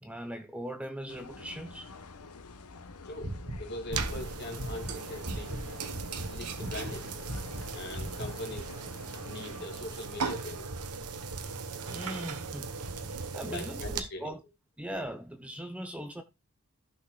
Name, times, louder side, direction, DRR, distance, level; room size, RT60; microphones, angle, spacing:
voice 1, 0.0-1.9 8.5-8.6 11.9-12.7 13.3-14.4 14.8-16.2, right 1 dB, 5° right, 0.6 m, -39 dB
sound 1, 1.1-9.7, left 3 dB, 85° left, 1.0 m, -48 dB
voice 2, 3.0-5.6 6.3-7.3 7.7-8.8 9.2-10.7 13.5-14.3, left 2 dB, 50° left, 2.2 m, -41 dB
sound 2, 3.2-5.7 5.9-6.3 6.6-7.0 7.2-7.6 7.9-8.3, right 1 dB, 55° right, 3.0 m, -37 dB
sound 3, 3.9-14.0, right 5 dB, 90° right, 1.1 m, -38 dB
15.0 x 6.3 x 2.3 m
head